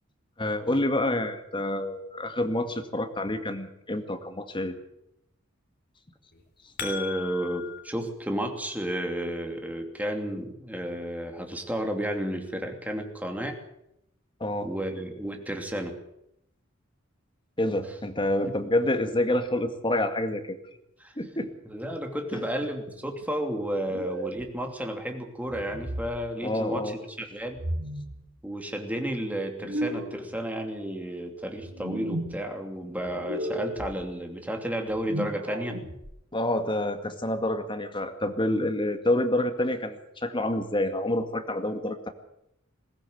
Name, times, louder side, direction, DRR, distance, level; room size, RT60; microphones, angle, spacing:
voice 1, 0.4-4.7 14.4-14.7 17.6-20.6 21.2-21.5 22.3-22.4 26.4-26.9 36.3-42.1, left 1 dB, 25° left, 7 dB, 2.0 m, -28 dB
sound 1, 6.3-7.8, left 6 dB, 55° left, 3.9 m, -36 dB
voice 2, 6.8-13.6 14.6-16.0 21.0-21.1 21.7-27.6 28.4-35.8, right 1 dB, 10° right, 4 dB, 2.9 m, -32 dB
sound 2, 23.8-24.5 25.5-26.1 27.5-28.2 29.5-30.3 31.5-32.3 33.1-33.9 34.9-36.1, right 1 dB, 85° right, 4.6 m, -34 dB
21.5 x 16.0 x 8.0 m, 0.80 s
head